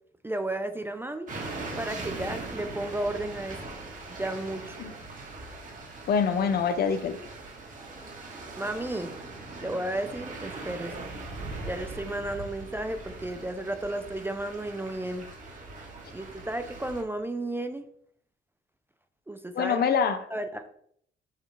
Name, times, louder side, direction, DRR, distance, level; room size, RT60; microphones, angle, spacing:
voice 1, 0.2-1.3 1.8-3.6 4.2-4.8 8.6-9.1 9.6-11.1 11.7-15.3 16.1-17.8 19.3-19.8 20.3-20.6, right 1 dB, 10° right, 8 dB, 0.3 m, -33 dB
sound 1, 1.3-17.0, right 2 dB, 40° right, 1.2 m, -41 dB
voice 2, 6.1-7.2 19.5-20.2, left 6 dB, 55° left, 10 dB, 0.5 m, -25 dB
5.6 x 2.4 x 3.0 m, 0.65 s
cardioid pair, 90°, 20 cm